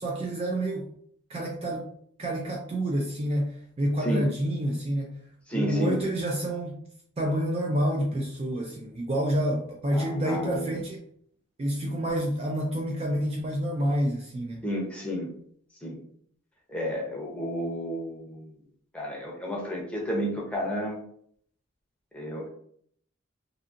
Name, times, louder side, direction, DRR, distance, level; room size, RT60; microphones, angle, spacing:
voice 1, 0.0-0.9 1.3-1.9 2.2-5.1 5.5-6.8 7.2-11.0 11.6-14.6, right 1 dB, 30° right, 0 dB, 0.3 m, -28 dB
voice 2, 5.5-6.0 9.9-10.7 14.6-15.3 15.8-16.0 16.7-18.5 18.9-21.0 22.1-22.5, equal, 5° left, -3 dB, 0.6 m, -31 dB
2.6 x 2.6 x 2.4 m, 0.63 s
head